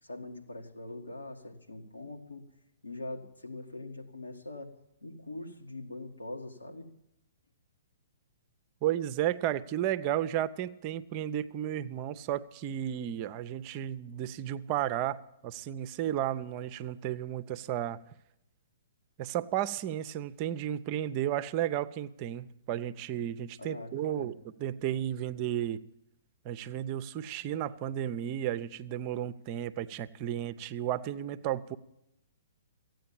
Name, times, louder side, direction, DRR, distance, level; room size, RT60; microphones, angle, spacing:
voice 1, 0.0-2.4 2.8-4.7 5.0-6.9 23.6-24.3, left 2 dB, 85° left, 2 dB, 2.0 m, -42 dB
voice 2, 8.8-18.0 19.2-24.3 24.6-25.8 26.4-31.8, right 11 dB, 35° right, 15 dB, 0.6 m, -33 dB
14.5 x 9.2 x 8.9 m, 0.84 s
figure-of-eight pair, 120°, 0 cm